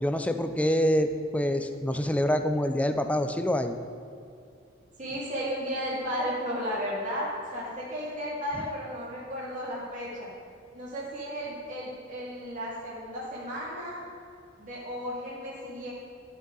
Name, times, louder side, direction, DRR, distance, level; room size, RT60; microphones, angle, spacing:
voice 1, 0.0-3.7, equal, 5° left, 7 dB, 0.4 m, -26 dB
voice 2, 5.0-10.3 10.7-14.0 14.6-15.9, equal, 40° right, -7 dB, 2.3 m, -34 dB
12.5 x 6.7 x 3.9 m, 2.5 s
head